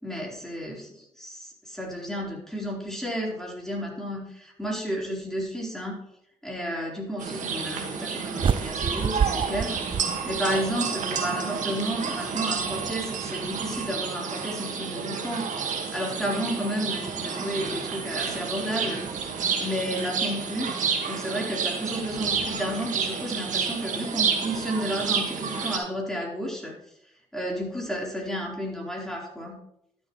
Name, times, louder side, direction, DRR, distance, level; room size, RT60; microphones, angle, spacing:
voice 1, 0.0-6.0 6.4-9.8 10.3-15.5 15.9-19.0 19.6-20.8 21.1-26.7 27.3-29.6, equal, 5° left, -2 dB, 3.9 m, -32 dB
sound 1, 7.2-25.8, right 6 dB, 60° right, 1.7 m, -30 dB
sound 2, 8.4-10.8, right 7 dB, 35° right, 0.3 m, -28 dB
12.0 x 7.5 x 3.1 m, 0.75 s
supercardioid pair, 55°, 14 cm